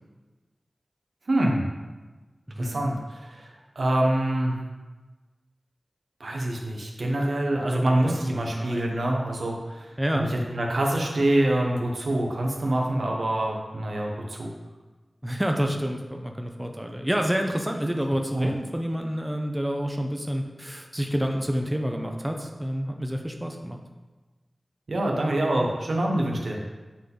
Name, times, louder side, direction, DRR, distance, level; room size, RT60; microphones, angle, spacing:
voice 1, 1.3-1.6 2.6-3.5 3.7-4.6 6.2-14.5 18.3-18.5 24.9-26.6, right 1 dB, 80° right, 0 dB, 1.1 m, -25 dB
voice 2, 2.5-2.8 7.7-8.2 8.5-8.9 10.0-10.3 15.2-23.8, equal, 10° right, 3 dB, 0.6 m, -28 dB
8.4 x 3.8 x 3.9 m, 1.2 s
wide cardioid pair, 60°, 0 cm